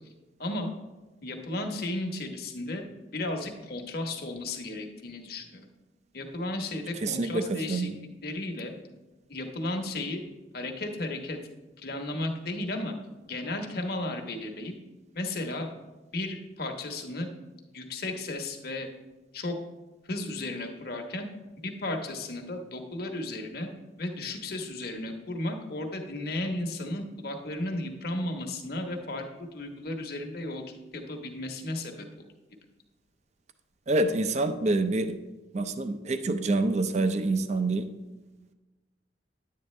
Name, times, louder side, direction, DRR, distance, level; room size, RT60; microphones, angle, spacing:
voice 1, 0.4-0.7 1.2-2.8 3.1-5.7 6.1-7.9 8.2-8.7 9.3-10.2 10.5-11.4 11.8-12.9 13.3-14.7 15.1-15.7 16.1-17.3 17.7-18.9 19.3-19.6 20.1-21.3 21.6-23.7 24.0-32.1, left 2 dB, 55° left, 3 dB, 1.1 m, -34 dB
voice 2, 7.0-8.0 33.9-35.1 35.5-37.9, right 2 dB, 40° right, 9 dB, 0.5 m, -26 dB
10.5 x 8.5 x 3.2 m, 1.1 s
head